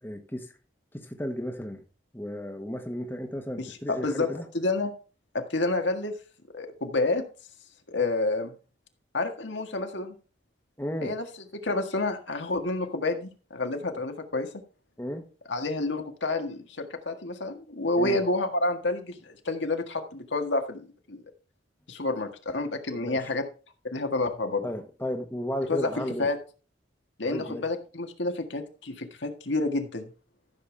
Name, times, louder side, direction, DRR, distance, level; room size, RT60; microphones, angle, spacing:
voice 1, 0.0-0.5 0.9-1.8 2.1-4.5 10.8-11.2 13.9-14.0 15.0-15.2 18.0-18.2 23.0-23.3 24.6-26.3 27.3-27.7, equal, 10° left, 4 dB, 1.2 m, -34 dB
voice 2, 3.6-4.3 4.5-4.9 5.3-6.1 6.5-7.2 7.9-8.5 9.1-10.2 11.0-11.2 11.5-14.6 15.5-21.2 21.9-23.4 23.8-24.7 25.7-25.9 26.2-26.4 27.2-30.1, left 2 dB, 75° left, 5 dB, 1.7 m, -29 dB
14.0 x 7.0 x 3.4 m, 0.35 s
head